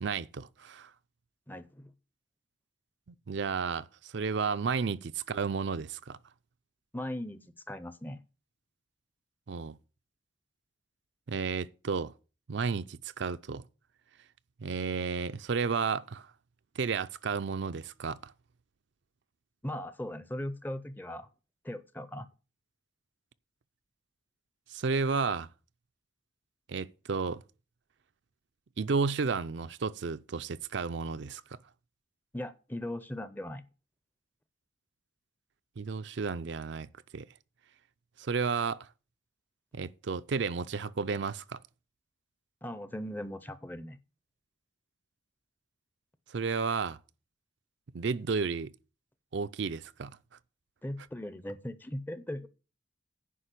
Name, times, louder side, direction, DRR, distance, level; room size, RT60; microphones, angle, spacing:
voice 1, 0.0-0.9 3.3-6.2 9.5-9.8 11.3-12.1 12.5-13.6 14.6-16.3 16.8-18.3 24.7-25.5 26.7-27.4 28.8-31.6 35.8-36.9 37.1-37.3 38.2-38.9 39.7-41.6 46.3-47.0 47.9-48.7 49.3-50.2, right 5 dB, 60° right, 0.5 m, -32 dB
voice 2, 1.5-1.9 6.9-8.2 19.6-21.3 21.6-22.3 32.3-33.6 42.6-44.0 50.8-52.5, left 1 dB, 10° left, 0.6 m, -39 dB
10.0 x 5.3 x 8.2 m
head